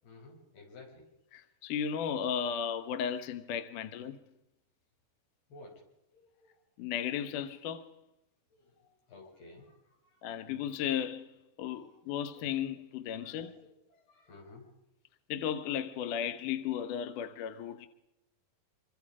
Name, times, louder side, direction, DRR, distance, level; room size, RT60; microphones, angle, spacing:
voice 1, 0.0-1.1 5.5-5.8 6.1-6.6 8.5-10.2 11.8-12.0 12.3-12.4 13.2-13.5 13.9-14.7, left 2 dB, 85° left, 7.7 m, -54 dB
voice 2, 1.3-4.2 6.8-7.9 10.2-11.3 11.6-13.6 15.3-17.9, left 8 dB, 65° left, 2.4 m, -35 dB
26.5 x 24.5 x 5.0 m
omnidirectional pair, 4.4 m